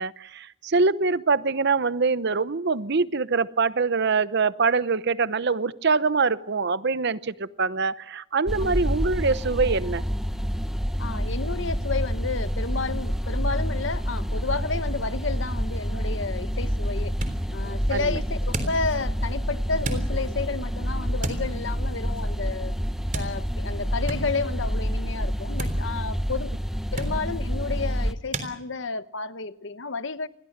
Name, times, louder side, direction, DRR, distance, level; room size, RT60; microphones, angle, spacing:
voice 1, 0.0-10.0 17.9-18.2, right 4 dB, 60° right, 0.9 m, -24 dB
sound 1, 8.5-28.1, equal, ahead, 1.1 m, -28 dB
voice 2, 11.0-17.2 17.5-22.8 23.1-26.5 26.9-30.3, left 4 dB, 65° left, 1.0 m, -31 dB
sound 2, 16.9-28.5, right 2 dB, 40° right, 3.6 m, -39 dB
28.0 x 22.0 x 6.6 m
head